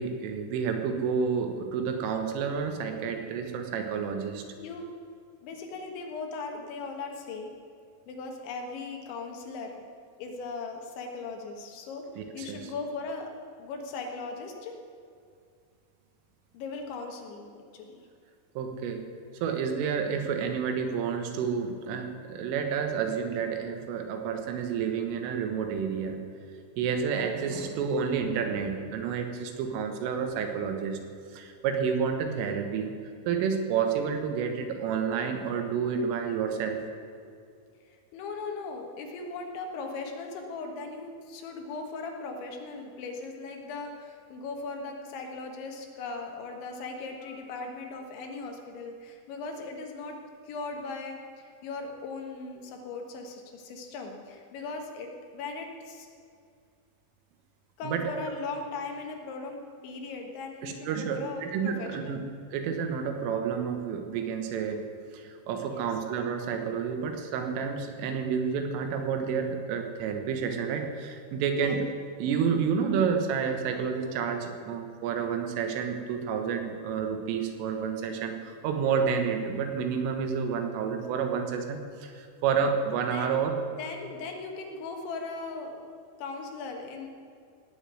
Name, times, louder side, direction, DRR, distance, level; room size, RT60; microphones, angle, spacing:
voice 1, 0.0-4.5 12.2-12.7 18.6-19.1 19.4-26.2 26.8-31.0 31.3-32.9 33.3-36.8 57.8-58.1 60.6-62.2 62.5-64.9 65.1-71.9 72.2-83.5, right 6 dB, 90° right, 5 dB, 3.9 m, -30 dB
voice 2, 5.4-7.5 8.1-9.8 10.2-13.3 13.6-14.8 16.5-18.0 37.9-50.2 50.4-56.1 57.8-62.2 65.7-65.9 71.6-71.8 83.1-83.4 83.7-85.9 86.2-87.1, left 3 dB, 75° left, 3 dB, 3.7 m, -38 dB
17.5 x 7.0 x 9.3 m, 2.3 s
omnidirectional pair, 5.6 m